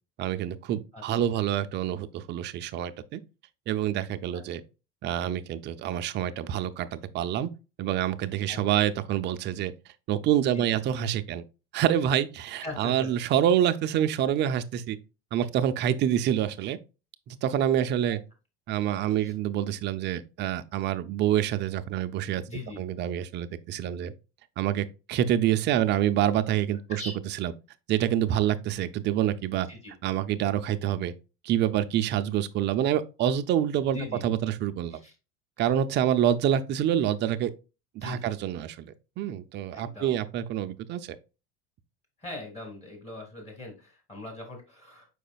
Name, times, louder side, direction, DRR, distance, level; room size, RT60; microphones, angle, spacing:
voice 1, 0.2-3.2 3.7-4.6 5.0-7.5 7.8-9.7 10.1-11.4 11.7-15.0 15.3-16.8 17.3-18.2 18.7-22.4 22.8-24.1 24.6-27.0 27.4-27.5 27.9-29.7 30.0-31.1 31.4-35.0 35.6-37.5 38.0-41.1, right 10 dB, 35° right, 0.4 m, -27 dB
voice 2, 0.9-1.4 4.3-4.4 8.5-8.8 10.5-10.8 12.6-13.1 19.1-19.3 22.5-22.8 26.9-27.1 29.7-29.9 33.9-34.2 34.9-35.1 35.6-35.7 38.0-38.3 39.7-40.2 42.2-45.1, left 2 dB, 20° left, 1.7 m, -41 dB
5.0 x 4.8 x 2.2 m
supercardioid pair, 115°, 31 cm